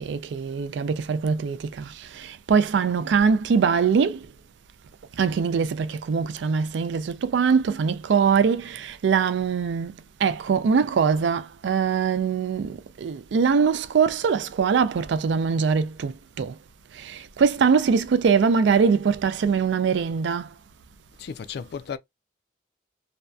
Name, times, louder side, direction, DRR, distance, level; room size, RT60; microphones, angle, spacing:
voice 1, 0.0-1.9 2.2-4.2 5.2-9.9 10.2-16.5 17.0-20.5, right 6 dB, 65° right, 0.3 m, -22 dB
voice 2, 21.2-22.0, left 6 dB, 60° left, 0.3 m, -34 dB
2.6 x 2.1 x 2.2 m
head